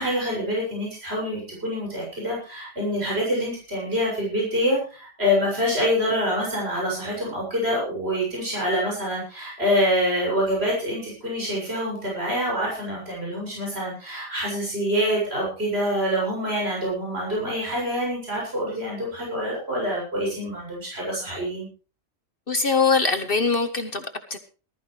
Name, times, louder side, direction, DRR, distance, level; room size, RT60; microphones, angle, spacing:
voice 1, 0.0-21.7, equal, 50° right, -4 dB, 7.6 m, -26 dB
voice 2, 22.5-24.4, left 4 dB, 45° left, 7 dB, 1.4 m, -22 dB
19.5 x 14.0 x 3.4 m, 0.36 s
omnidirectional pair, 1.4 m